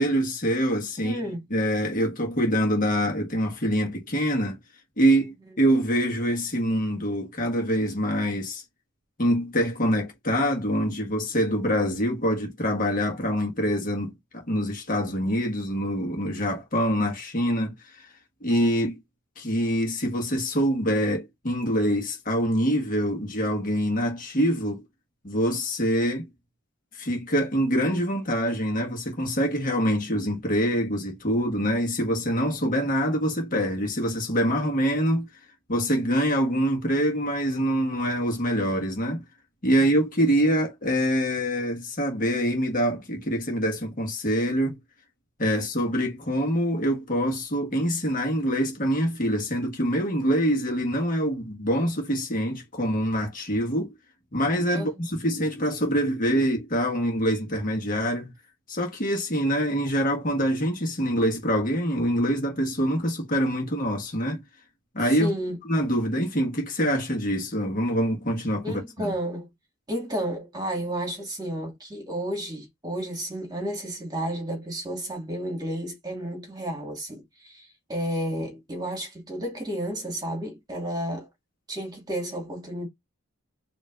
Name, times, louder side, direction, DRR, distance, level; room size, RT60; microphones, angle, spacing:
voice 1, 0.0-1.2 1.5-4.6 5.0-8.6 9.2-18.1 18.4-19.0 19.4-24.8 25.2-26.3 26.9-35.3 35.7-39.2 39.6-44.8 45.4-53.9 54.3-58.3 58.7-64.4 64.9-65.3 65.7-69.1, equal, 45° left, 1.6 m, -25 dB
voice 2, 1.0-1.4 39.7-39.8 45.8-46.1 54.7-55.0 65.2-65.6 68.6-69.5 69.9-81.3 81.7-82.9, right 1 dB, 20° right, 2.0 m, -32 dB
5.1 x 2.9 x 2.5 m
head